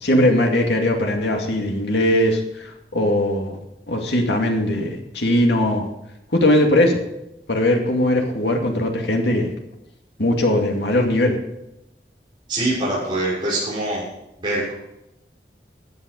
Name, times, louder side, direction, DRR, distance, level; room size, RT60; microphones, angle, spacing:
voice 1, 0.0-3.6 3.9-5.9 6.3-7.0 7.5-9.5 10.2-11.4, left 1 dB, 80° left, 2 dB, 2.4 m, -19 dB
voice 2, 12.5-14.0 14.4-14.7, right 1 dB, 25° right, -8 dB, 6.1 m, -23 dB
13.5 x 9.1 x 5.4 m, 0.86 s
head